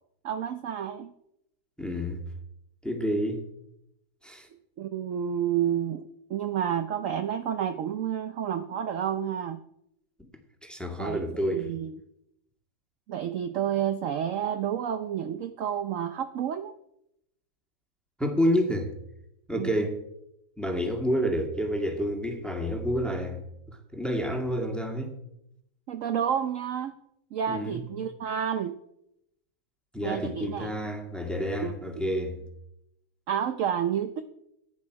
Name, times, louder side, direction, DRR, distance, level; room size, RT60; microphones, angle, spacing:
voice 1, 0.2-1.1 4.8-6.0 6.3-9.6 11.0-11.2 11.5-12.0 13.1-16.7 19.5-19.8 25.9-26.9 27.3-28.8 30.0-30.7 31.6-31.7 33.3-34.2, right 9 dB, 65° right, 0.8 m, -30 dB
voice 2, 1.8-2.2 2.8-3.4 4.2-4.5 10.2-10.3 10.6-11.7 18.2-18.9 19.5-20.1 20.6-23.4 23.7-25.1 27.5-27.9 29.9-32.4, equal, ahead, 1.7 m, -29 dB
15.0 x 9.9 x 4.7 m
omnidirectional pair, 2.1 m